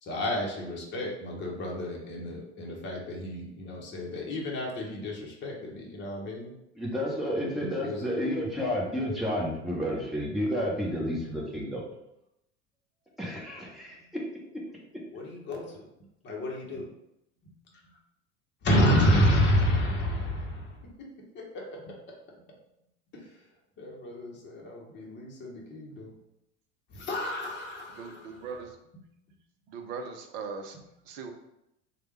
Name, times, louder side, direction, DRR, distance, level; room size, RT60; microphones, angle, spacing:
voice 1, 0.0-6.5 7.6-8.1 15.1-15.8 16.2-16.9 18.6-20.8 21.5-21.8 23.8-26.1 26.9-28.3, equal, 30° left, -2 dB, 0.9 m, -29 dB
voice 2, 6.7-11.8 13.2-14.0, equal, ahead, -4 dB, 0.9 m, -31 dB
voice 3, 27.9-28.8 29.7-30.8 31.1-31.3, right 5 dB, 50° right, 5 dB, 0.6 m, -39 dB
3.1 x 2.3 x 3.2 m, 0.83 s
figure-of-eight pair, 70°, 36 cm